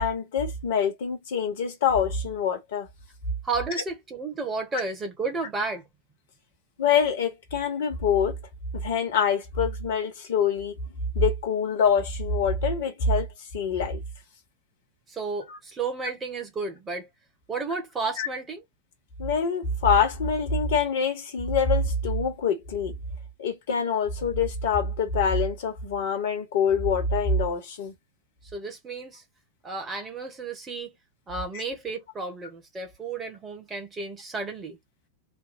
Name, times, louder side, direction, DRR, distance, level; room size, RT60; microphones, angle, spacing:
voice 1, 0.0-2.9 6.8-8.4 8.7-10.8 11.1-13.3 13.5-14.0 15.5-15.6 18.2-18.3 19.2-23.0 23.4-27.9 31.5-31.6, left 5 dB, 55° left, 1.3 m, -25 dB
voice 2, 3.4-5.8 15.1-17.1 17.5-18.6 28.5-29.2 29.6-30.9 31.3-34.8, right 4 dB, 20° right, 1.3 m, -32 dB
3.5 x 2.3 x 4.2 m
figure-of-eight pair, 90°, 0 cm